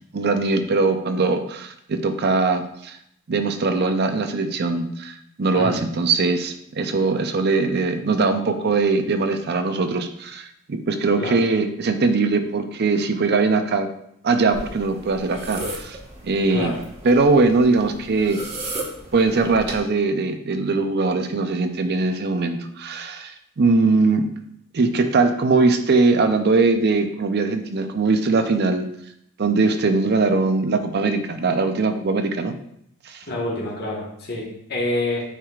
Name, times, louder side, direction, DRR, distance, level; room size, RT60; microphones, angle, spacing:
voice 1, 0.1-3.0 3.3-13.9 14.2-16.0 16.2-16.7 17.0-18.4 19.1-24.3 24.7-28.9 29.4-32.6 33.1-33.2, right 3 dB, 50° right, 8 dB, 0.5 m, -21 dB
voice 2, 5.5-5.8 11.2-11.4 16.5-16.8 33.3-35.3, left 1 dB, 50° left, -3 dB, 1.4 m, -27 dB
sound 1, 14.5-19.8, right 2 dB, 30° right, 1.1 m, -35 dB
8.9 x 4.8 x 2.4 m, 0.71 s
head